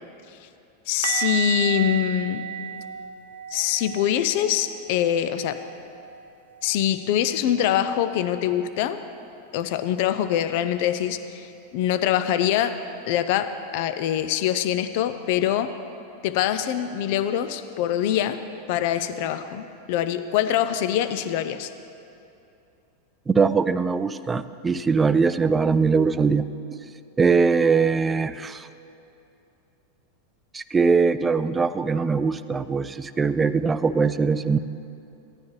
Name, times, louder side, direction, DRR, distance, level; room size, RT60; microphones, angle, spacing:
voice 1, 0.9-2.4 3.5-5.6 6.6-9.0 9.5-12.8 13.1-15.7 16.2-18.4 18.7-21.7, left 10 dB, 60° left, 11 dB, 0.5 m, -24 dB
sound 1, 1.0-6.8 7.1-7.3 7.6-7.8 11.0-11.1, right 10 dB, 85° right, 0.5 m, -33 dB
voice 2, 23.3-26.5 27.2-28.7 30.5-34.6, right 5 dB, 15° right, 13 dB, 0.3 m, -21 dB
15.0 x 9.6 x 3.2 m, 2.7 s
hypercardioid pair, 110°, 0 cm